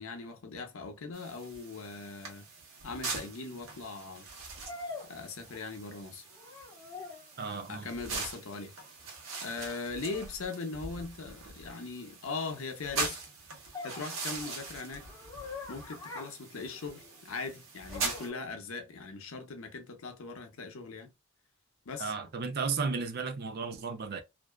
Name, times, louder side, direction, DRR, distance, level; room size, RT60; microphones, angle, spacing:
voice 1, 0.0-2.5 2.8-4.3 5.0-6.2 7.7-8.7 9.4-13.2 13.8-15.1 15.7-21.1 21.9-22.1, left 4 dB, 75° left, 0.7 m, -40 dB
sound 1, 1.1-18.3, right 4 dB, 65° right, 0.9 m, -42 dB
sound 2, 2.2-2.3 4.6-5.9 6.3-7.4 10.0-10.3 13.7-17.2 17.9-18.5, left 4 dB, 20° left, 0.7 m, -45 dB
voice 2, 7.4-7.9 22.0-24.2, right 5 dB, 50° right, 0.5 m, -34 dB
2.5 x 2.2 x 2.2 m
head